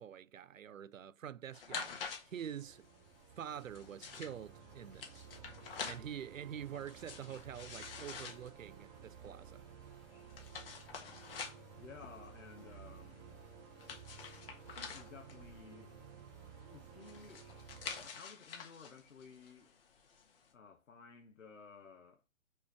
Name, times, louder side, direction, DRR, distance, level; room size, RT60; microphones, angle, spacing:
voice 1, 0.0-1.9 2.2-2.9 3.4-5.3 5.8-9.7, right 9 dB, 80° right, 0.6 m, -46 dB
sound 1, 1.5-20.5, left 6 dB, 45° left, 1.5 m, -49 dB
sound 2, 1.6-18.1, right 6 dB, 15° right, 0.6 m, -55 dB
voice 2, 11.8-13.4 13.9-14.3 14.9-17.5 18.0-19.7 20.5-22.2, left 5 dB, 70° left, 1.2 m, -56 dB
4.6 x 4.6 x 4.4 m
figure-of-eight pair, 130°, 39 cm